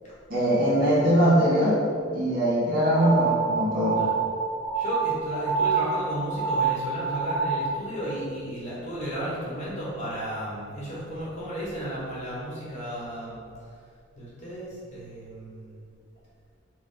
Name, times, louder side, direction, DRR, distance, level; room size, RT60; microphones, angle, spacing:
voice 1, 0.3-1.8 2.1-4.0, equal, 45° right, -8 dB, 1.4 m, -21 dB
sound 1, 2.9-7.8, right 5 dB, 15° right, 0.6 m, -27 dB
voice 2, 4.7-13.4 14.2-15.8, equal, 35° left, -8 dB, 1.1 m, -34 dB
4.2 x 2.2 x 3.9 m, 2.3 s
head